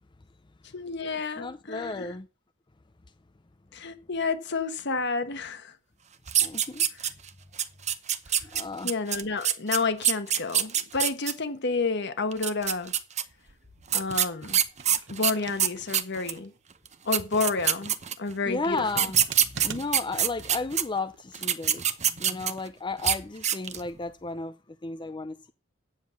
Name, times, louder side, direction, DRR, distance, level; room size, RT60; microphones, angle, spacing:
voice 1, 0.7-2.1 3.7-5.8 8.3-8.4 8.8-12.9 13.9-14.6 15.1-16.5 17.0-19.0, left 4 dB, 60° left, 1.3 m, -30 dB
voice 2, 1.4-2.3 6.4-6.8 8.5-8.9 16.1-16.2 18.5-24.6 24.8-25.5, left 3 dB, 25° left, 0.5 m, -33 dB
sound 1, 6.3-7.3 7.6-11.3 12.3-13.2 13.9-16.4 16.9-17.0 17.1-18.3 18.9-20.8 21.3-22.7 23.0-23.2 23.4-23.9, right 9 dB, 35° right, 0.8 m, -25 dB
sound 2, 14.8-16.0 16.4-16.5 18.5-20.2 21.1-21.6, right 7 dB, 65° right, 0.9 m, -42 dB
9.3 x 7.4 x 6.3 m
head